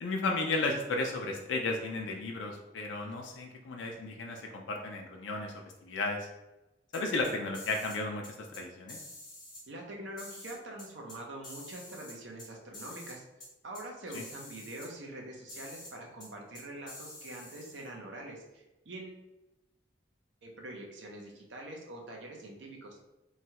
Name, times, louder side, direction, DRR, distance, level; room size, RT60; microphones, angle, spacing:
voice 1, 0.0-5.5 5.8-6.3 6.9-9.0 14.1-14.2, left 3 dB, 75° left, 2 dB, 0.4 m, -34 dB
sound 1, 6.9-8.0 8.2-8.6 8.9-9.6 10.2-11.2 11.4-12.5 12.7-13.1 13.4-13.5 13.7-13.8 14.1-14.9 15.5-15.9 16.2-16.3 16.5-17.9, left 2 dB, 25° left, 1.1 m, -48 dB
voice 2, 9.7-13.2 13.6-19.2 20.4-23.0, right 1 dB, 70° right, 0 dB, 0.7 m, -44 dB
3.1 x 2.3 x 2.8 m, 0.99 s
head